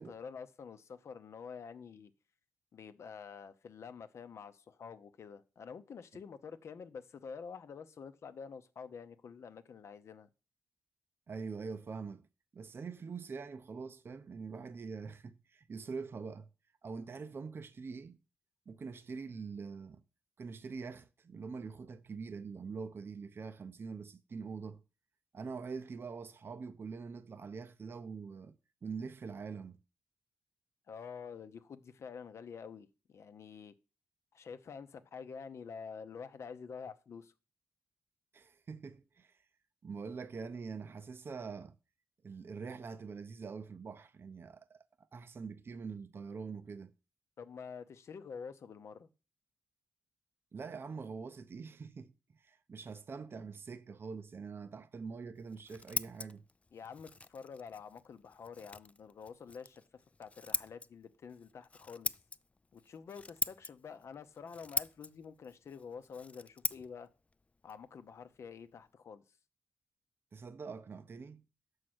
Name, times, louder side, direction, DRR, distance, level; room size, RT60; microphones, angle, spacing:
voice 1, 0.0-2.1 2.7-10.3 30.9-33.7 34.3-37.3 47.4-49.1 56.7-59.8 60.2-62.1 62.7-67.1 67.6-69.2, left 6 dB, 65° left, 0.7 m, -48 dB
voice 2, 11.3-12.3 12.5-16.5 16.8-18.2 18.7-20.0 20.4-24.8 25.3-29.8 38.3-39.4 39.8-41.8 42.2-46.9 50.5-56.4 70.3-71.4, right 5 dB, 50° right, 0.6 m, -44 dB
Scissors, 55.3-68.9, left 3 dB, 25° left, 0.4 m, -43 dB
6.4 x 4.7 x 6.1 m
cardioid pair, 60°, 5 cm